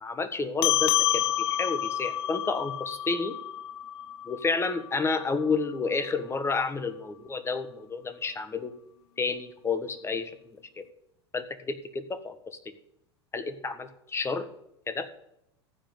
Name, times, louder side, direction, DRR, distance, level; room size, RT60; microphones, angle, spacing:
voice 1, 0.0-3.4 4.3-8.7 9.2-10.4 10.8-10.9 11.3-12.6 13.3-14.5 14.9-15.1, left 4 dB, 20° left, 10 dB, 1.5 m, -30 dB
sound 1, 0.6-5.4, left 13 dB, 70° left, 0.4 m, -29 dB
15.0 x 5.2 x 7.9 m, 0.77 s
hypercardioid pair, 90°, 14 cm